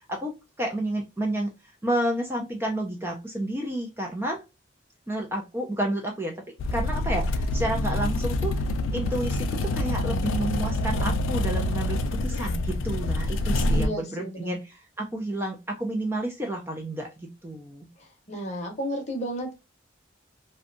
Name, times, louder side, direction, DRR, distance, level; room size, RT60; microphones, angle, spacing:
voice 1, 0.1-1.5 1.8-4.4 5.1-6.3 6.7-8.6 8.9-17.9, right 1 dB, 10° right, 0.3 m, -30 dB
sound 1, 6.6-13.9, left 1 dB, 85° left, 0.3 m, -26 dB
voice 2, 13.7-14.5 18.3-19.5, equal, 35° left, 0.7 m, -32 dB
2.6 x 2.2 x 2.5 m
head